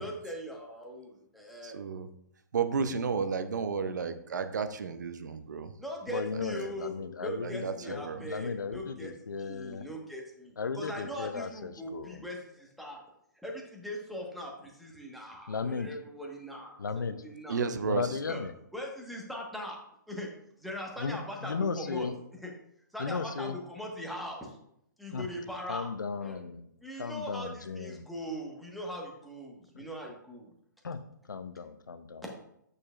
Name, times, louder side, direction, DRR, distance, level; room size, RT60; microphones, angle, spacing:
voice 1, 0.0-1.8 5.8-6.9 7.2-13.0 13.4-17.6 18.3-18.4 18.7-19.8 20.1-20.3 20.6-22.1 22.4-22.5 22.9-24.6 25.0-25.9 26.2-26.4 26.8-30.5 32.2-32.3, equal, ahead, -1 dB, 1.3 m, -40 dB
voice 2, 1.6-2.1 2.5-5.7 7.4-8.3 17.5-18.2, right 5 dB, 65° right, 10 dB, 0.7 m, -32 dB
voice 3, 6.1-9.9 10.6-12.3 15.5-15.9 16.8-17.2 17.8-18.5 21.0-22.2 23.0-23.6 25.1-25.3 25.7-26.6 27.0-28.0 29.7-29.9 30.8-31.0 31.3-32.2, left 5 dB, 75° left, 11 dB, 0.7 m, -35 dB
8.5 x 6.6 x 2.4 m, 0.74 s
figure-of-eight pair, 130°, 10 cm